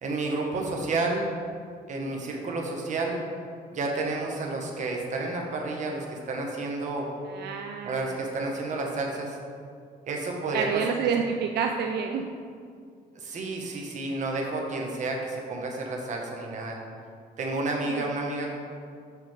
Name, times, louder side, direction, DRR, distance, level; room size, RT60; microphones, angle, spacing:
voice 1, 0.0-1.3 1.9-3.2 3.7-7.1 7.8-9.4 10.1-10.8 13.1-16.8 17.4-18.5, right 2 dB, 45° right, 0 dB, 1.0 m, -30 dB
voice 2, 7.3-8.2 10.5-12.2 17.9-18.1, right 6 dB, 80° right, 3 dB, 0.4 m, -29 dB
6.6 x 5.1 x 3.2 m, 2.2 s
cardioid pair, 130°, 17 cm